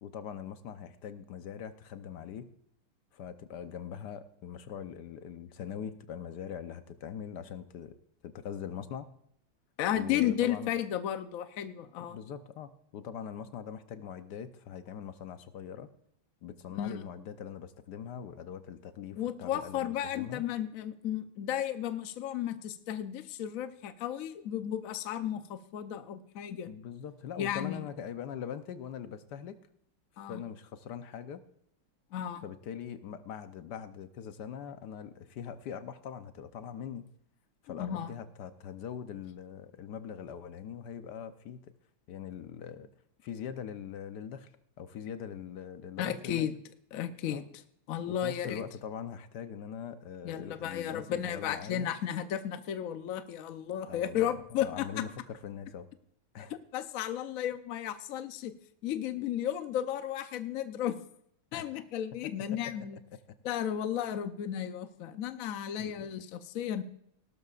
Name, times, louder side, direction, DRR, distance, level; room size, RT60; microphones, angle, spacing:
voice 1, 0.0-2.5 3.1-8.0 8.2-9.1 9.9-10.7 12.1-15.9 16.4-20.4 26.7-29.6 30.3-31.4 32.4-37.1 37.6-41.8 42.1-42.9 43.2-44.5 44.8-46.5 47.3-47.4 48.1-51.9 53.9-55.9 56.3-56.5 61.5-61.6 62.5-63.0 65.8-66.1, left 8 dB, 65° left, 10 dB, 1.1 m, -42 dB
voice 2, 9.8-12.2 16.8-17.1 19.2-26.7 27.4-27.8 30.2-30.4 32.1-32.4 37.7-38.1 46.0-46.5 46.9-47.4 47.9-48.6 50.2-54.9 56.7-58.5 58.8-61.0 61.5-63.0 63.4-66.8, left 10 dB, 80° left, 9 dB, 0.7 m, -34 dB
18.5 x 12.0 x 2.4 m, 0.71 s
omnidirectional pair, 2.4 m